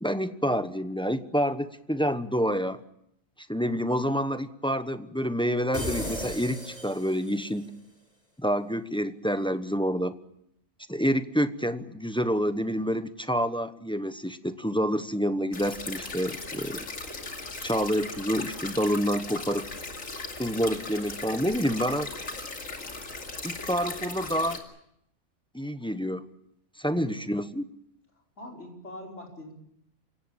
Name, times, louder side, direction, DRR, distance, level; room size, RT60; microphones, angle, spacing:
voice 1, 0.0-2.8 3.5-7.7 8.4-10.1 10.9-16.9 17.6-19.7 20.3-22.1 23.4-24.6 25.5-26.2 26.8-27.6, equal, 5° left, 11 dB, 0.9 m, -28 dB
sound 1, 5.7-7.6, left 1 dB, 30° left, 4.3 m, -35 dB
sound 2, 15.5-24.6, left 3 dB, 90° left, 2.9 m, -38 dB
voice 2, 26.8-27.3 28.4-29.5, left 1 dB, 65° left, 0 dB, 5.6 m, -43 dB
27.5 x 16.5 x 8.7 m, 0.77 s
omnidirectional pair, 1.3 m